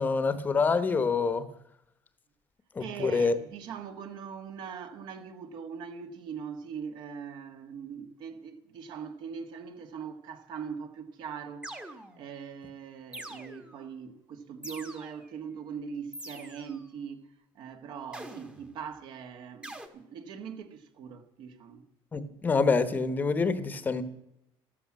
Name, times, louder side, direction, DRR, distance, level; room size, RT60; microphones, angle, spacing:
voice 1, 0.0-1.5 2.7-3.4 22.1-24.0, left 4 dB, 20° left, 1.0 m, -26 dB
voice 2, 2.8-11.8 12.2-17.3 17.6-21.8, right 7 dB, 55° right, 1.7 m, -41 dB
sound 1, 11.6-12.4 13.1-13.9 14.6-15.3 16.1-16.8 18.1-18.8 19.6-19.9, right 1 dB, 10° right, 1.2 m, -44 dB
13.5 x 13.0 x 7.5 m
cardioid pair, 170°, 9 cm